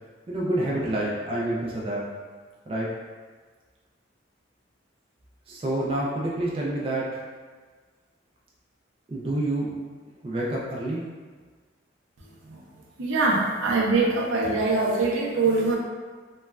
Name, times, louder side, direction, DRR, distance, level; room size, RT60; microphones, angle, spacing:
voice 1, 0.3-2.0 2.7-2.9 5.5-7.2 9.1-9.7 10.2-11.1, right 1 dB, 30° right, -5 dB, 0.3 m, -28 dB
voice 2, 13.0-15.8, right 3 dB, 85° right, -2 dB, 0.5 m, -23 dB
3.0 x 2.2 x 2.2 m, 1.5 s
head